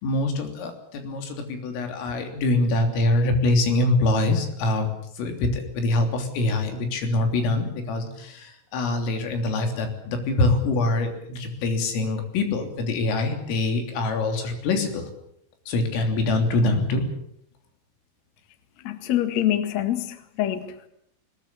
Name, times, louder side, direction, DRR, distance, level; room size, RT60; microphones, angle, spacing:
voice 1, 0.0-4.9 5.2-15.1 15.7-17.1, left 2 dB, 80° left, 5.8 m, -24 dB
voice 2, 18.8-20.9, left 12 dB, 60° left, 1.9 m, -25 dB
21.5 x 20.5 x 8.5 m
omnidirectional pair, 5.9 m